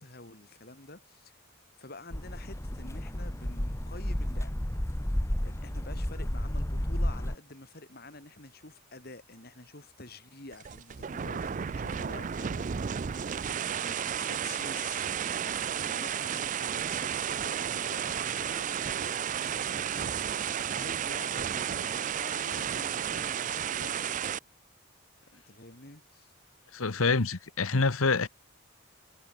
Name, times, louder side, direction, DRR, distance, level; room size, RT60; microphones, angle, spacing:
voice 1, 0.0-1.4 1.8-4.5 5.4-13.1 13.4-15.1 15.8-20.4 20.7-24.4 25.3-26.3, left 2 dB, 50° left, 3.1 m, -49 dB
sound 1, 2.1-7.4, equal, 15° left, 1.1 m, -32 dB
sound 2, 10.5-24.4, right 8 dB, 35° right, 0.4 m, -32 dB
voice 2, 26.7-28.3, left 4 dB, 85° left, 1.2 m, -26 dB
head